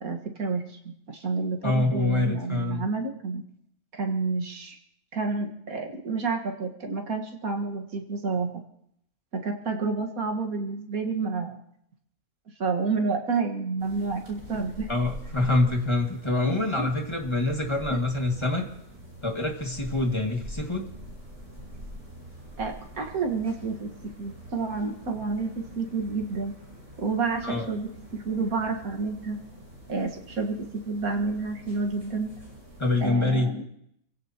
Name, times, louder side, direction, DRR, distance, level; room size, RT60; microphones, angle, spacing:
voice 1, 0.0-3.4 3.9-4.8 5.1-8.6 9.3-11.6 12.6-14.9 16.4-16.9 22.6-26.5 27.0-29.4 29.9-32.3 33.0-33.6, right 4 dB, 70° right, 2 dB, 2.1 m, -29 dB
voice 2, 1.6-2.9 14.9-18.7 19.2-20.9 27.4-27.7 32.8-33.5, left 2 dB, 20° left, 1 dB, 2.0 m, -25 dB
sound 1, 13.8-33.1, equal, 45° right, 5.9 m, -45 dB
28.0 x 16.5 x 2.9 m, 0.75 s
omnidirectional pair, 1.5 m